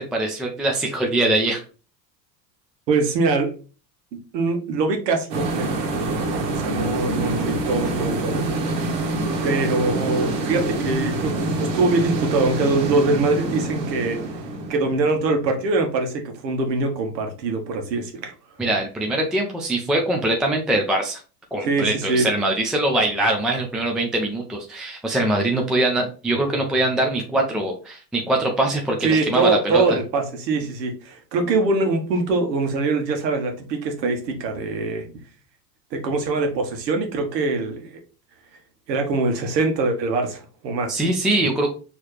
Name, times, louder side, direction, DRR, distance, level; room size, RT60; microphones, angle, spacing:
voice 1, 0.0-1.6 18.6-21.2 21.5-29.8 40.9-41.7, right 1 dB, ahead, 1 dB, 0.3 m, -22 dB
voice 2, 2.9-3.5 4.3-5.8 6.5-8.8 9.4-14.3 14.7-18.3 21.6-22.3 29.0-35.1 35.9-38.0 38.9-41.0, right 3 dB, 85° right, 4 dB, 1.3 m, -23 dB
sound 1, 5.3-15.8, right 2 dB, 60° right, 1.5 m, -26 dB
4.7 x 3.1 x 3.1 m, 0.36 s
hypercardioid pair, 105°, 49 cm